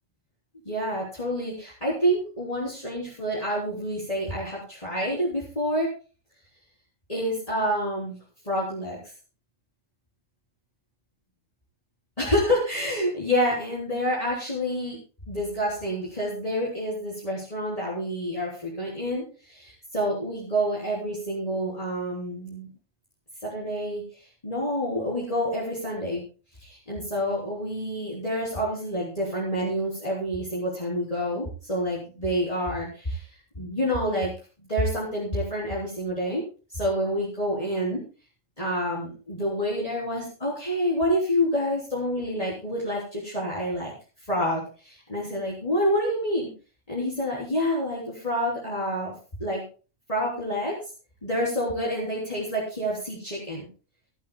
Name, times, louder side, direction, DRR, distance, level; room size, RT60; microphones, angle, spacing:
voice 1, 0.7-5.9 7.1-8.2 8.4-9.0 12.2-15.0 15.3-22.7 23.4-26.2 26.6-33.3 33.6-34.3 34.7-36.4 36.7-38.0 38.6-43.9 44.3-46.5 46.9-49.1 49.4-49.6 50.1-50.8 51.2-53.7, equal, 30° left, -6 dB, 3.6 m, -28 dB
25.0 x 8.5 x 2.2 m, 0.35 s
omnidirectional pair, 1.3 m